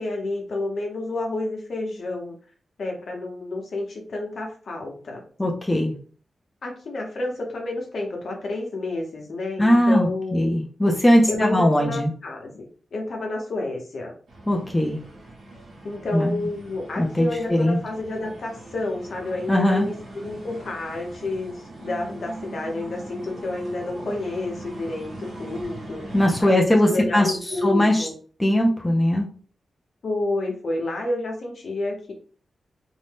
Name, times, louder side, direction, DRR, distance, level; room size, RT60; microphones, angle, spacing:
voice 1, 0.0-2.4 2.8-5.2 6.6-10.5 11.3-14.1 15.8-28.1 30.0-32.1, left 2 dB, 55° left, 1 dB, 0.8 m, -30 dB
voice 2, 5.4-5.9 9.6-12.1 14.5-15.0 16.1-16.5 17.0-17.8 19.5-19.9 26.1-27.3 27.6-28.1 28.4-29.3, left 1 dB, 10° left, 0 dB, 0.4 m, -20 dB
sound 1, 14.3-26.4, right 2 dB, 70° right, 1.0 m, -41 dB
2.6 x 2.1 x 3.3 m, 0.42 s
wide cardioid pair, 170°, 0 cm